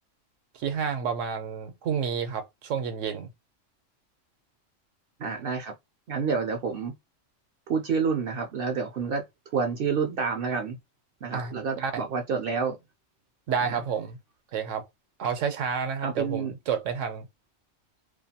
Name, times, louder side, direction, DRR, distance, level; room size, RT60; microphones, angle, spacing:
voice 1, 0.5-3.3 11.3-12.0 13.5-14.2 14.5-14.8 15.2-17.3, right 7 dB, 80° right, 1.0 m, -30 dB
voice 2, 5.2-5.7 6.1-6.9 7.7-9.2 9.5-10.8 11.2-12.8 13.6-13.8 16.0-16.5, right 5 dB, 60° right, 0.6 m, -28 dB
2.4 x 2.2 x 2.7 m
omnidirectional pair, 1.3 m